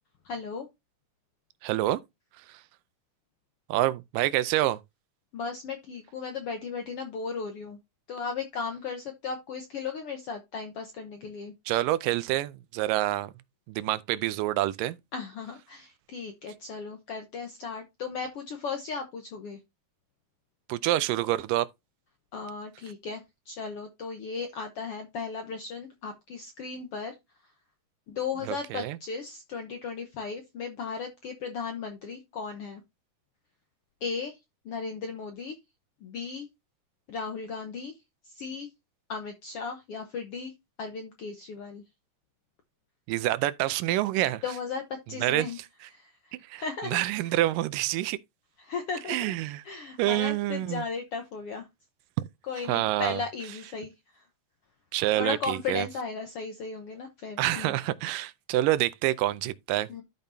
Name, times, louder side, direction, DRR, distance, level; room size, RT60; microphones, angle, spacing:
voice 1, 0.2-0.7 5.3-7.8 8.1-11.5 15.1-19.6 22.3-27.1 28.1-32.8 34.0-34.4 34.6-35.6 36.0-36.5 37.1-37.9 38.2-38.7 39.1-40.5 40.8-41.8 44.4-45.6 45.9-47.0 48.6-49.4 49.6-51.7 52.5-54.2 55.1-57.7 59.9-60.0, left 5 dB, 70° left, 1.4 m, -36 dB
voice 2, 1.6-2.0 2.5-2.6 3.7-4.8 11.7-13.3 13.7-15.0 20.7-21.7 28.5-29.0 43.1-44.4 45.2-45.5 46.3-48.2 49.1-49.6 50.0-50.8 52.7-53.2 54.9-55.9 57.4-59.9, right 15 dB, 80° right, 2.2 m, -27 dB
12.5 x 5.2 x 2.7 m
omnidirectional pair, 3.9 m